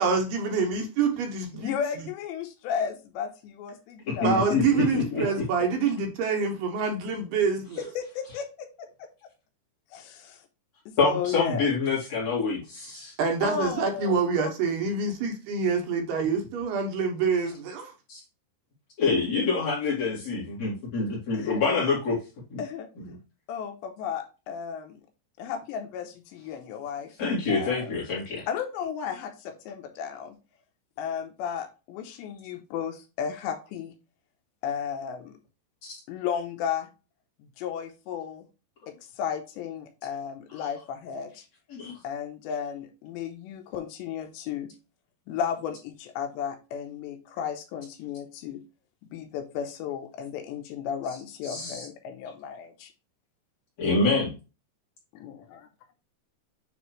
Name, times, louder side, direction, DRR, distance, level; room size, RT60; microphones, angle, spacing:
voice 1, 0.0-1.7 4.2-7.8 13.2-17.9, right 5 dB, 75° right, 3 dB, 2.8 m, -26 dB
voice 2, 1.6-5.4 7.8-9.3 9.9-10.4 10.9-11.7 13.4-14.5 21.4-21.6 22.6-22.9 23.5-25.0 25.4-27.1 27.5-27.9 28.5-30.4 31.0-33.9 34.6-35.4 36.1-36.9 37.4-38.5 38.9-41.4 42.0-44.7 45.3-48.6 49.1-52.9 55.1-55.3, left 7 dB, 80° left, 5 dB, 3.0 m, -34 dB
voice 3, 4.1-5.5 11.0-13.1 18.1-18.2 19.0-22.2 22.5-22.6 23.0-23.1 27.2-28.5 40.6-40.7 41.7-41.9 51.4-51.9 53.8-54.3, left 4 dB, 45° left, -5 dB, 2.8 m, -26 dB
9.1 x 3.4 x 3.1 m, 0.30 s
omnidirectional pair, 5.1 m